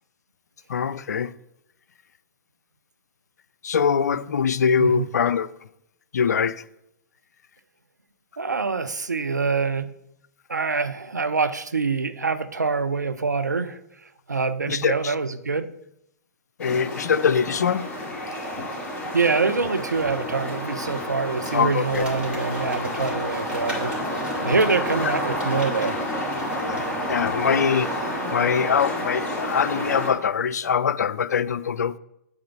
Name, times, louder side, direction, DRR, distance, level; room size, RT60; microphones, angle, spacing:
voice 1, 0.7-1.3 3.6-5.5 6.1-6.6 14.7-15.1 16.6-17.9 21.5-22.1 26.7-26.8 27.1-27.9 28.2-32.0, left 6 dB, 75° left, 0.5 m, -23 dB
voice 2, 8.4-9.9 10.5-13.8 14.3-15.7 19.1-23.9 24.4-26.0, right 4 dB, 90° right, 0.7 m, -25 dB
sound 1, 16.6-30.1, equal, 15° left, 3.0 m, -29 dB
Crumpling crinkling, 21.8-27.6 27.9-28.0, right 1 dB, 10° right, 2.8 m, -42 dB
7.9 x 5.0 x 7.3 m
figure-of-eight pair, 110°, 9 cm